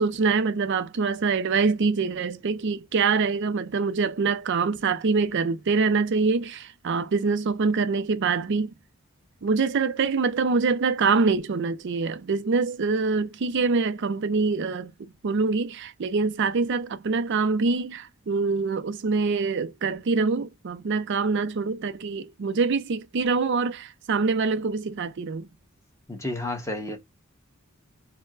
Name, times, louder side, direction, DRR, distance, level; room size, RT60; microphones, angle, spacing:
voice 1, 0.0-8.7 9.4-25.5, right 4 dB, 55° right, 0.4 m, -25 dB
voice 2, 26.1-27.0, left 1 dB, 15° left, 1.0 m, -31 dB
4.3 x 2.1 x 2.3 m
head